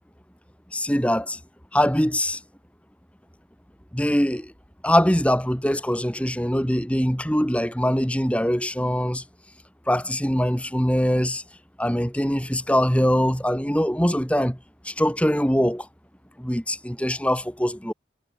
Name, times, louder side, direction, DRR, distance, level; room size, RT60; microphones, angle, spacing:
voice 1, 0.7-1.4 1.7-2.4 3.9-4.5 4.8-9.2 9.9-11.4 11.8-14.6 14.9-15.9 16.4-17.9, equal, 5° left, 3.5 m, -22 dB
head